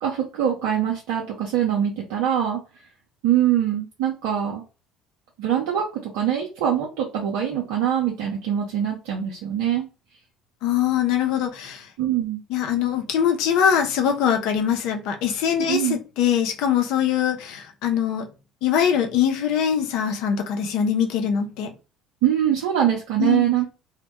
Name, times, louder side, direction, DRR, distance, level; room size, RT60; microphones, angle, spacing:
voice 1, 0.0-2.6 3.2-4.6 5.4-9.9 12.0-12.4 15.5-16.0 22.2-23.7, right 10 dB, 70° right, 0.5 m, -23 dB
voice 2, 10.6-11.9 12.5-18.2 18.6-21.7 23.2-23.4, left 8 dB, 65° left, 0.5 m, -22 dB
2.1 x 2.1 x 2.8 m
hypercardioid pair, 60°, 0 cm